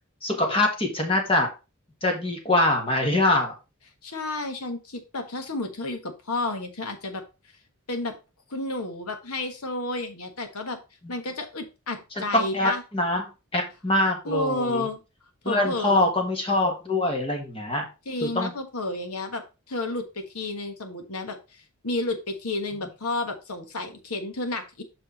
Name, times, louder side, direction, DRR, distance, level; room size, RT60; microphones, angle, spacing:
voice 1, 0.2-1.5 2.0-3.5 11.0-11.1 12.2-13.2 13.5-14.9 15.4-17.8 18.2-18.5, left 2 dB, 25° left, 2 dB, 1.5 m, -24 dB
voice 2, 4.0-7.2 7.9-8.2 8.5-10.8 11.1-12.8 14.2-15.0 15.4-16.1 18.0-24.8, left 2 dB, 85° left, 6 dB, 1.4 m, -31 dB
6.0 x 4.9 x 4.1 m, 0.29 s
head